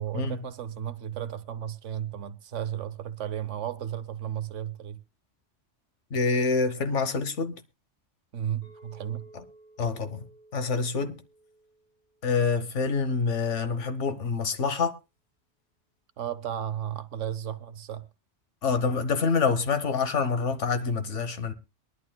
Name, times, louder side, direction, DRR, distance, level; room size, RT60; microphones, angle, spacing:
voice 1, 0.0-5.0 8.3-9.3 16.2-18.1, right 10 dB, 80° right, 1.2 m, -34 dB
voice 2, 6.1-7.5 9.8-10.3 10.5-11.2 12.2-14.9 18.6-21.5, left 4 dB, 80° left, 1.5 m, -26 dB
Chink clink, 8.6-12.9, right 2 dB, 50° left, 6.4 m, -55 dB
22.5 x 11.5 x 2.2 m
omnidirectional pair, 1.2 m